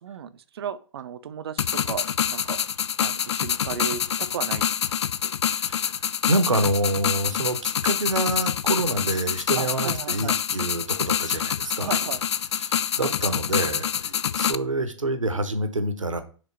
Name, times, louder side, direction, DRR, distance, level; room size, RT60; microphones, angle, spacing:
voice 1, 0.0-2.6 3.0-4.6 5.2-5.3 9.6-10.4 11.8-12.2, right 8 dB, 55° right, 13 dB, 0.6 m, -35 dB
sound 1, 1.6-14.6, left 9 dB, 60° left, 0.4 m, -26 dB
voice 2, 5.5-5.9 6.3-12.0 12.6-16.2, right 2 dB, 80° right, 8 dB, 1.1 m, -27 dB
5.1 x 3.8 x 5.6 m, 0.39 s
figure-of-eight pair, 115°, 16 cm